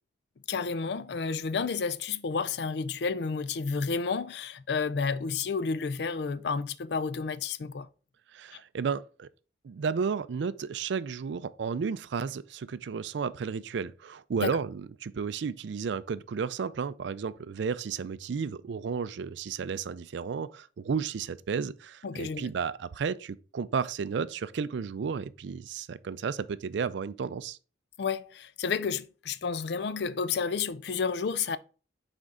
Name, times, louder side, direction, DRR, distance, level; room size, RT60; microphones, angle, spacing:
voice 1, 0.5-7.9 8.5-8.6 14.4-14.5 22.0-22.5 28.0-31.6, left 5 dB, 60° left, 0.4 m, -31 dB
voice 2, 8.3-9.3 9.6-27.6, right 6 dB, 70° right, 0.4 m, -33 dB
6.3 x 4.3 x 3.6 m
head